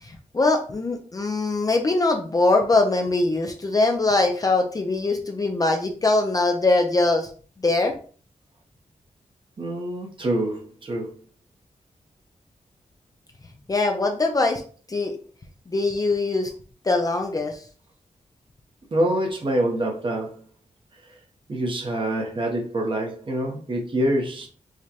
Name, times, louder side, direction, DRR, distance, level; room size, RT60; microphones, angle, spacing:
voice 1, 0.0-7.3 7.6-7.9 13.7-14.6 14.9-15.1 15.7-16.5 16.8-17.6, left 2 dB, 30° left, 0.5 m, -22 dB
voice 2, 9.6-11.1 18.9-20.4 21.5-24.5, right 1 dB, 40° right, 0.8 m, -26 dB
4.8 x 2.2 x 2.8 m
wide cardioid pair, 115°, 13 cm